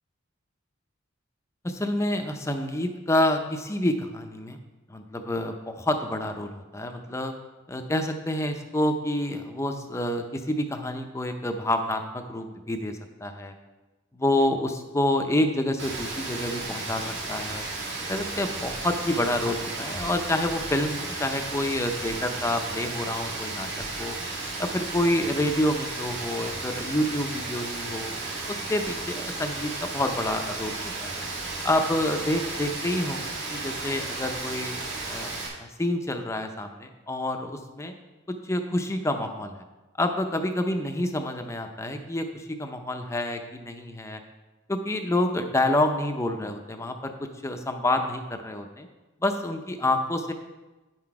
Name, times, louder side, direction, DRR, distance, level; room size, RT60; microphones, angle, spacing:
voice 1, 1.6-4.6 4.9-7.3 7.7-13.5 14.1-17.6 18.1-23.7 24.0-24.1 24.6-28.1 28.5-31.1 31.6-34.7 35.1-35.3 35.6-37.9 38.4-39.6 40.0-44.2 44.7-47.1 47.4-48.9 49.2-50.3, left 1 dB, 15° left, 5 dB, 0.5 m, -28 dB
Rain, 15.8-35.5, right 3 dB, 60° right, 2.2 m, -34 dB
9.4 x 5.9 x 4.7 m, 1.2 s
head